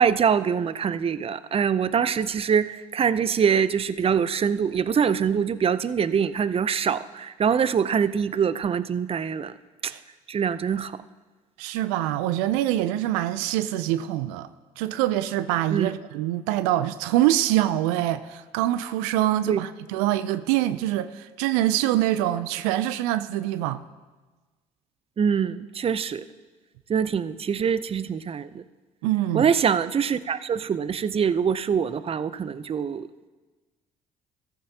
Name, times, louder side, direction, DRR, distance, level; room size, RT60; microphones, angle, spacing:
voice 1, 0.0-9.5 9.8-9.9 10.3-11.0 15.7-15.9 19.5-19.6 25.2-26.2 26.9-28.6 29.3-33.3, right 7 dB, 35° right, 0.5 m, -24 dB
voice 2, 11.6-14.5 14.8-23.8 29.0-29.5, right 13 dB, 80° right, 0.4 m, -24 dB
15.0 x 14.0 x 2.8 m
hypercardioid pair, 55°, 18 cm